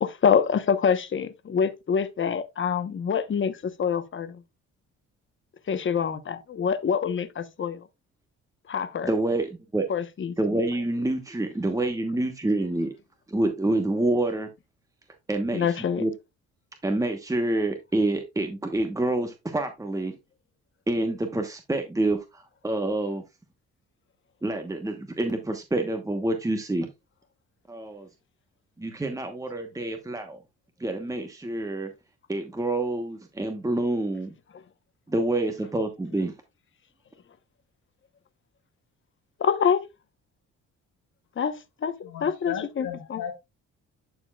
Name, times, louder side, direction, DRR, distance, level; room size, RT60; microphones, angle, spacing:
voice 1, 0.0-4.4 5.7-7.8 8.7-9.1 9.9-10.6 15.5-16.1 39.4-39.8 41.4-43.2, left 7 dB, 40° left, 1.1 m, -26 dB
voice 2, 9.0-9.9 10.4-12.9 13.3-14.5 15.3-15.7 16.0-16.1 16.8-20.2 20.9-23.2 24.4-26.9 27.7-28.1 28.8-30.4 30.8-31.9 32.3-34.3 35.1-36.3, right 2 dB, 10° right, 1.1 m, -27 dB
voice 3, 42.0-43.3, left 9 dB, 90° left, 2.5 m, -36 dB
11.5 x 4.5 x 2.4 m
cardioid pair, 90°, 30 cm